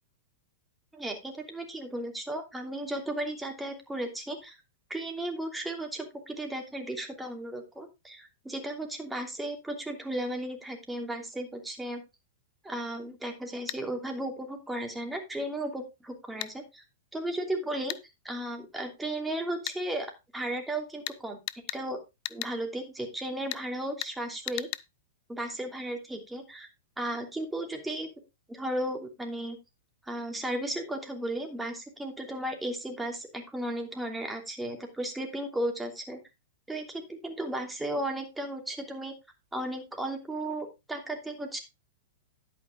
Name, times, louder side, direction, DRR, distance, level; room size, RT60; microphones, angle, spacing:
voice 1, 0.9-4.6 4.9-12.0 12.6-16.8 17.1-17.9 18.2-21.4 21.7-22.0 22.3-24.7 25.3-26.7 27.0-28.1 28.5-29.6 30.1-36.2 36.7-39.1 39.5-41.6, right 1 dB, 5° right, 3 dB, 2.9 m, -35 dB
sound 1, 13.7-13.8 16.4-16.5 17.9-18.0 19.7-19.8 21.1-21.2 21.5-21.8 22.3-22.6 23.5-23.7 24.0-24.2 24.5-24.9, left 20 dB, 45° left, 0.5 m, -36 dB
11.0 x 8.7 x 3.4 m, 0.24 s
hypercardioid pair, 105°, 0 cm